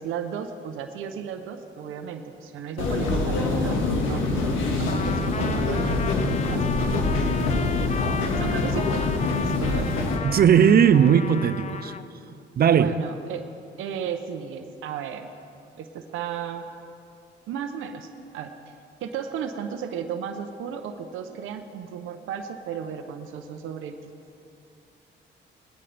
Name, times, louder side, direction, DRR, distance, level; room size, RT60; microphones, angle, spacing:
voice 1, 0.0-7.0 8.4-9.0 9.4-10.1 12.7-13.4 13.8-15.3 15.8-16.7 17.5-18.1 18.3-18.5 19.0-24.1, right 8 dB, 85° right, 6 dB, 0.8 m, -34 dB
sound 1, 2.8-10.2, left 3 dB, 90° left, 1.8 m, -25 dB
Trumpet, 4.9-12.1, left 6 dB, 35° left, 0.5 m, -35 dB
voice 2, 10.2-11.9 12.6-12.9, right 8 dB, 50° right, 13 dB, 0.6 m, -18 dB
19.0 x 13.0 x 3.4 m, 2.6 s
cardioid pair, 90°, 20 cm